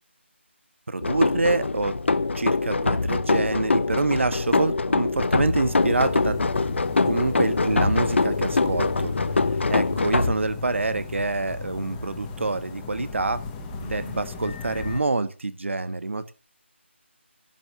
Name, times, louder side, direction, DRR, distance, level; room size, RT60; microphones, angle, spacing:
voice 1, 0.9-2.0 2.3-6.4 7.0-9.1 9.7-13.4 13.8-16.3, right 3 dB, 70° right, 1.5 m, -26 dB
sound 1, 1.0-10.3, left 3 dB, 65° left, 0.9 m, -24 dB
sound 2, 5.1-15.0, left 4 dB, 15° left, 1.4 m, -35 dB
11.0 x 7.6 x 7.0 m
figure-of-eight pair, 165°, 7 cm